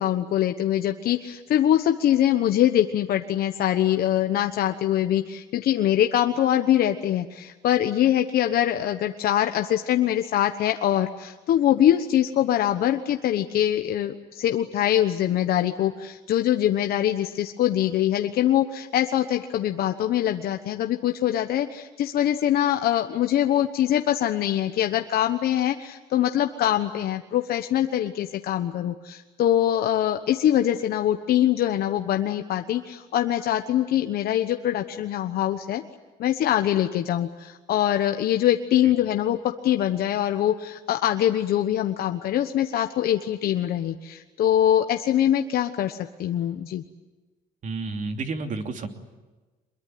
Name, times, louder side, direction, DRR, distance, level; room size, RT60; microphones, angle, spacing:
voice 1, 0.0-35.8 36.2-39.4 39.6-46.8, left 11 dB, 65° left, 6 dB, 1.2 m, -23 dB
voice 2, 47.6-48.9, right 3 dB, 50° right, 5 dB, 3.0 m, -30 dB
24.5 x 22.5 x 9.5 m, 1.2 s
cardioid pair, 110°, 17 cm